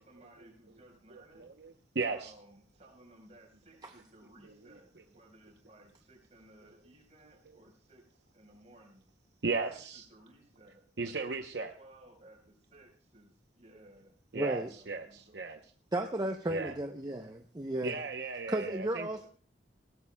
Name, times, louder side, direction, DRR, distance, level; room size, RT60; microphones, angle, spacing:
voice 1, 0.0-1.5 2.1-9.1 9.7-14.2 14.6-15.4 19.2-19.3, right 1 dB, 35° right, 1 dB, 4.3 m, -59 dB
voice 2, 1.1-2.3 4.4-4.5 9.4-10.1 11.0-11.7 14.3-15.6 16.5-16.7 17.8-19.1, right 4 dB, 65° right, 5 dB, 0.8 m, -36 dB
voice 3, 14.3-14.7 15.9-18.0 18.5-19.3, right 1 dB, 20° right, 4 dB, 0.6 m, -34 dB
19.0 x 17.0 x 2.2 m, 0.43 s
head